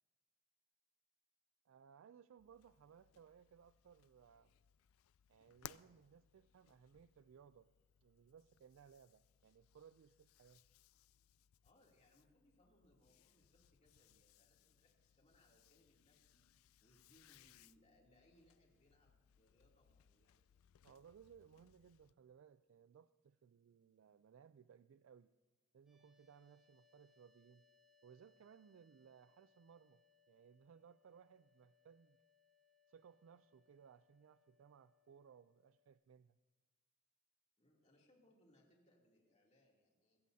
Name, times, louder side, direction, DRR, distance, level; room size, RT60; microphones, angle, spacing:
voice 1, 1.7-4.5 5.3-7.7 8.0-10.6 20.8-25.3 25.7-27.6 28.0-32.2 32.9-36.4, right 7 dB, 70° right, 14 dB, 0.3 m, -63 dB
sound 1, 2.4-22.1, left 11 dB, 85° left, 0.4 m, -65 dB
voice 2, 11.6-16.4 16.8-20.4 37.6-40.2, left 1 dB, 35° left, -2 dB, 2.9 m, -73 dB
sound 2, 25.9-35.9, left 6 dB, 5° right, 4.1 m, -76 dB
23.5 x 14.5 x 2.8 m, 1.3 s
head